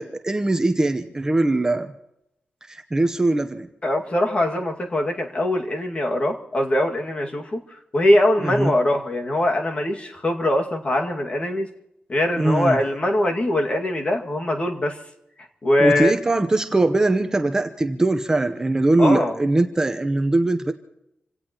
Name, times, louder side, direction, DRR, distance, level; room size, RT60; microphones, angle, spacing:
voice 1, 0.0-1.9 2.7-3.7 8.4-8.7 12.4-12.8 15.8-20.7, right 2 dB, 15° right, 6 dB, 0.8 m, -21 dB
voice 2, 3.8-7.6 7.9-11.7 12.1-15.0 15.6-16.1 19.0-19.3, left 1 dB, 30° left, 3 dB, 2.1 m, -22 dB
27.5 x 17.5 x 3.0 m, 0.82 s
wide cardioid pair, 180°, 4 cm